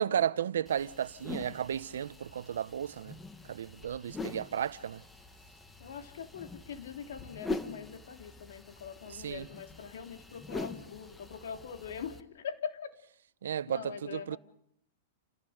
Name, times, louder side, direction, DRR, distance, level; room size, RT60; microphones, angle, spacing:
voice 1, 0.0-3.2 3.5-5.0 9.1-9.5 13.4-14.4, right 9 dB, 85° right, 0.9 m, -33 dB
sound 1, 0.7-12.2, left 3 dB, 10° left, 1.7 m, -44 dB
voice 2, 5.8-12.9 13.7-14.4, left 7 dB, 80° left, 3.2 m, -43 dB
29.5 x 15.5 x 8.0 m
hypercardioid pair, 145°, 0 cm